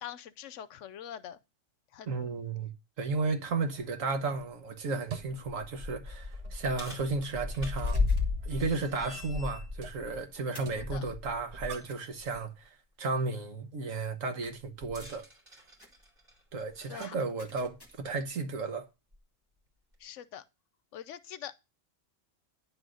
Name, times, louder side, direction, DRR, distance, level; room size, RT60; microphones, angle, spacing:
voice 1, 0.0-1.4 1.9-2.3 10.8-11.0 16.9-17.2 20.0-20.4 20.9-21.5, left 10 dB, 70° left, 0.9 m, -44 dB
voice 2, 2.1-2.7 3.0-8.0 8.4-12.5 13.0-15.2 16.5-18.9, right 3 dB, 80° right, 1.6 m, -33 dB
sound 1, 3.0-12.1, right 7 dB, 65° right, 1.2 m, -50 dB
Metal Door, 5.1-11.8 12.2-12.4 14.8-17.2 18.2-18.3 19.1-19.2, left 4 dB, 45° right, 3.1 m, -35 dB
sound 2, 7.8-8.4 10.5-10.9 11.9-12.0 14.4-14.8 15.8-16.1 17.4-18.2, left 1 dB, 20° left, 1.5 m, -54 dB
10.5 x 3.8 x 6.2 m
omnidirectional pair, 1.3 m